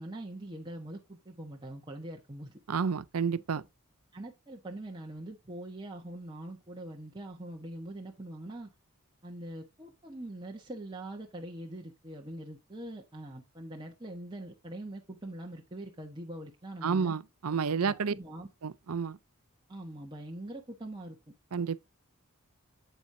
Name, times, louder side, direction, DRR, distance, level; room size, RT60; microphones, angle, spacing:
voice 1, 0.0-2.5 4.1-8.7 9.2-17.1 17.7-18.5 19.7-21.2, right 1 dB, 20° right, 1.1 m, -43 dB
voice 2, 2.7-3.6 16.8-18.1 18.6-19.2 21.5-21.9, right 5 dB, 75° right, 0.6 m, -30 dB
8.1 x 8.0 x 2.7 m
head